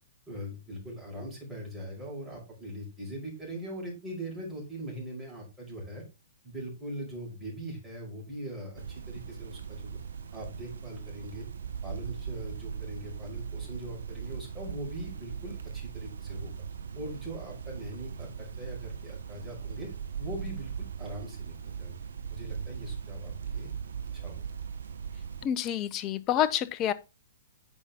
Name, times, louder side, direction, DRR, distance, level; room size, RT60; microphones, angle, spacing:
voice 1, 0.3-6.0 6.4-10.0 10.3-11.5 11.8-16.5 16.9-19.9 20.2-22.0 22.3-23.7 24.1-24.4, right 1 dB, 10° right, 5.0 m, -41 dB
sound 1, 8.8-25.5, right 7 dB, 65° right, 1.3 m, -39 dB
voice 2, 25.4-26.9, left 10 dB, 30° left, 0.7 m, -28 dB
9.1 x 5.8 x 3.5 m
figure-of-eight pair, 115°, 0 cm